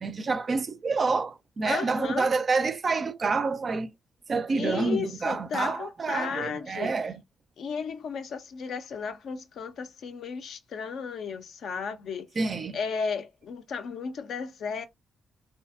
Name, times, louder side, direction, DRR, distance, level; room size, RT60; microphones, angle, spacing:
voice 1, 0.0-3.9 4.3-7.2 12.4-12.8, right 4 dB, 45° right, 0.4 m, -28 dB
voice 2, 1.6-2.3 4.5-6.9 7.6-12.3 12.7-14.9, left 6 dB, 65° left, 0.4 m, -34 dB
2.7 x 2.4 x 2.3 m
hypercardioid pair, 40°, 0 cm